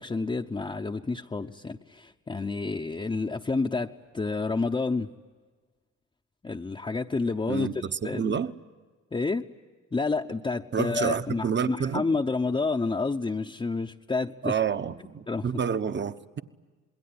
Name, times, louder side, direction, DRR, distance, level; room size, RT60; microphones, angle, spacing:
voice 1, 0.0-5.1 6.4-8.4 9.1-9.4 9.9-14.5 15.3-15.4, left 3 dB, 15° left, 0.8 m, -29 dB
voice 2, 7.5-8.5 10.7-12.0 14.4-16.4, right 7 dB, 35° right, 1.1 m, -29 dB
27.5 x 21.0 x 9.7 m
cardioid pair, 90°, 30 cm